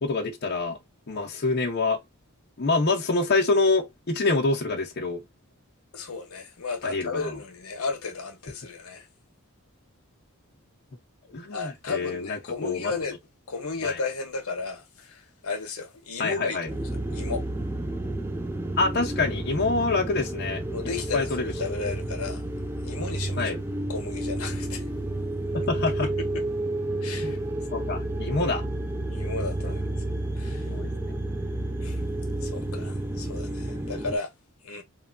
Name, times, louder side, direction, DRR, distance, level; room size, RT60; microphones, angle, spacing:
voice 1, 0.0-0.8 1.1-2.0 2.6-5.2 6.8-7.3 11.2-12.9 13.8-14.0 16.2-16.7 18.8-20.6 21.1-21.5 23.4-23.6 25.5-26.1 27.2-27.4 27.7-28.6 30.7-31.2, left 3 dB, 45° left, 0.6 m, -26 dB
voice 2, 5.9-9.1 11.5-13.2 13.5-16.8 17.1-17.4 20.7-22.4 22.8-23.5 23.9-24.9 26.0-26.4 27.0-27.4 28.3-28.5 29.1-29.8 30.4-30.7 31.8-32.0 32.4-34.3 34.6-34.8, left 4 dB, 80° left, 0.8 m, -34 dB
sound 1, 16.7-34.2, right 1 dB, 10° right, 0.3 m, -31 dB
3.1 x 2.2 x 2.4 m
head